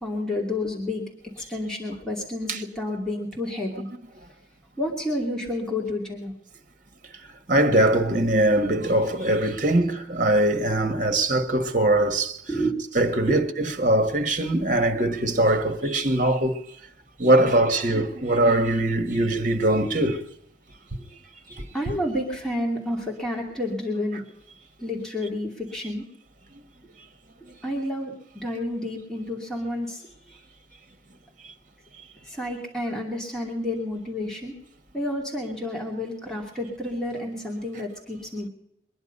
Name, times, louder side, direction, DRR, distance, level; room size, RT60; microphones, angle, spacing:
voice 1, 0.0-1.1 1.4-3.9 4.8-6.3 12.5-12.8 13.3-13.4 21.7-24.2 24.8-26.0 27.6-28.1 28.4-30.1 32.2-34.5 34.9-38.5, left 1 dB, 5° left, 2.7 m, -30 dB
voice 2, 7.5-12.3 12.9-13.4 13.8-16.6 17.2-20.2 21.6-21.7, right 1 dB, 45° right, 1.5 m, -21 dB
22.5 x 10.5 x 5.4 m
head